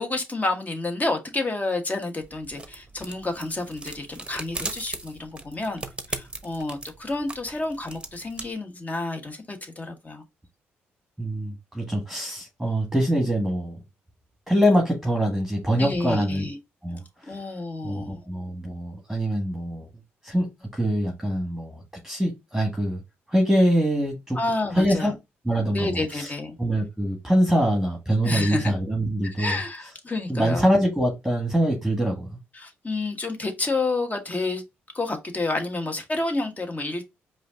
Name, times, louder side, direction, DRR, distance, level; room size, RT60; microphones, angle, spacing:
voice 1, 0.0-5.8 6.1-10.2 15.7-16.6 17.2-18.2 24.3-25.1 25.7-26.6 28.2-28.7 29.2-30.7 32.5-34.6 34.9-37.0, left 2 dB, 30° left, 1.5 m, -29 dB
sound 1, 2.2-8.5, right 2 dB, 20° right, 0.9 m, -38 dB
voice 2, 11.2-13.8 14.5-16.5 16.8-17.4 17.8-19.9 20.2-20.5 20.7-23.0 23.3-24.4 24.7-25.1 25.4-26.3 26.6-29.6 30.3-32.3, equal, 5° right, 1.7 m, -24 dB
4.9 x 2.7 x 3.7 m
supercardioid pair, 55°, 5 cm